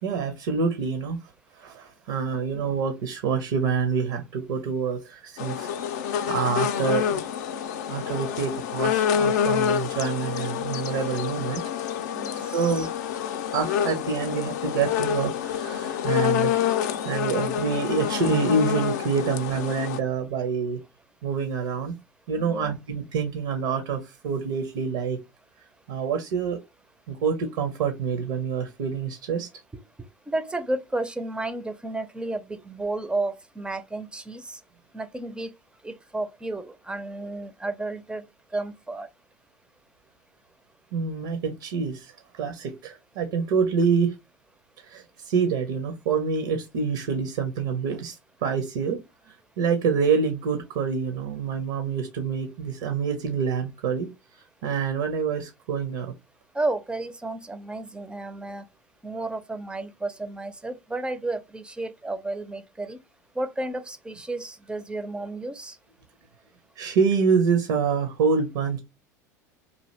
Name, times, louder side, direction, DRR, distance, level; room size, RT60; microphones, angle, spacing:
voice 1, 0.0-1.2 1.6-5.7 6.0-7.3 7.9-11.9 12.3-12.9 13.5-16.6 17.0-20.8 21.2-21.9 22.3-25.2 25.9-26.6 27.1-29.5 40.9-44.1 44.8-49.0 49.6-54.1 54.6-56.1 66.8-68.8, right 5 dB, 70° right, 0.6 m, -26 dB
sound 1, 5.4-20.0, left 8 dB, 70° left, 0.4 m, -27 dB
voice 2, 12.1-12.9 22.3-22.8 30.3-34.6 34.9-35.5 35.8-38.3 38.5-39.1 56.5-58.6 59.0-63.0 63.4-65.8, right 2 dB, 10° right, 0.4 m, -32 dB
2.8 x 2.5 x 3.1 m
hypercardioid pair, 80°, 10 cm